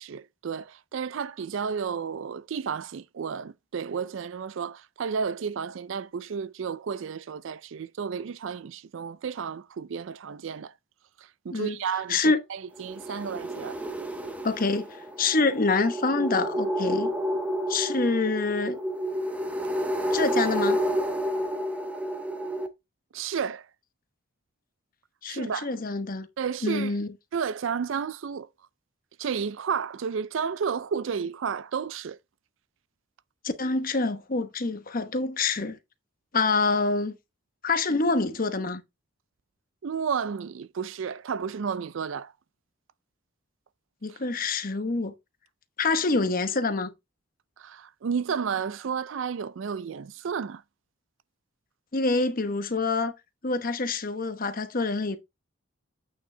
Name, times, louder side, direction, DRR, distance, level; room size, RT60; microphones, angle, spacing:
voice 1, 0.0-10.7 11.2-12.2 12.5-13.8 23.1-23.7 25.3-25.7 26.4-26.9 27.3-28.5 29.2-32.2 39.8-42.3 44.1-44.2 47.6-50.6, right 6 dB, 65° right, 0.4 m, -32 dB
voice 2, 12.1-12.4 14.4-17.1 17.7-18.8 20.1-20.8 25.2-26.3 26.6-27.1 33.4-35.8 36.3-37.2 37.6-38.8 44.0-45.1 45.8-46.9 51.9-53.1 53.4-55.2, left 3 dB, 45° left, 1.0 m, -26 dB
sound 1, 12.8-22.7, equal, 5° right, 0.9 m, -30 dB
8.6 x 6.4 x 3.2 m
head